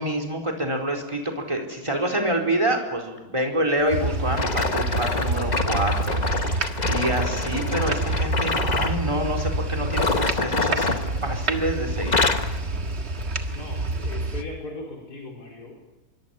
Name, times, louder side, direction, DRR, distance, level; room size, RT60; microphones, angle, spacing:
voice 1, 0.0-12.2, right 1 dB, 15° right, 4 dB, 4.4 m, -27 dB
sound 1, 3.9-14.4, right 2 dB, 35° right, 1.8 m, -28 dB
sound 2, 4.3-9.0 9.8-11.6 11.9-12.6 13.2-13.4 14.0-14.1, left 3 dB, 25° left, 1.1 m, -26 dB
voice 2, 13.5-15.8, left 2 dB, 50° left, -1 dB, 5.1 m, -38 dB
25.5 x 24.0 x 7.3 m, 1.1 s
omnidirectional pair, 2.2 m